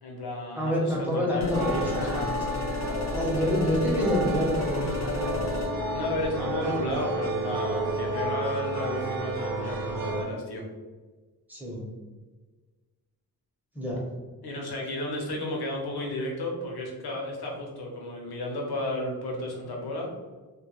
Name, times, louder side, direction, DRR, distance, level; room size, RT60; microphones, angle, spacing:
voice 1, 0.0-2.2 5.9-10.6 14.4-20.1, left 1 dB, 90° left, 0 dB, 0.7 m, -33 dB
voice 2, 0.6-2.5 3.1-5.4 11.5-11.9 13.7-14.0, equal, 5° right, -4 dB, 0.7 m, -27 dB
sound 1, 1.4-5.7, left 5 dB, 50° left, 0.5 m, -33 dB
sound 2, 1.5-10.2, right 2 dB, 65° right, 0.6 m, -31 dB
2.2 x 2.1 x 2.9 m, 1.3 s
wide cardioid pair, 130°, 37 cm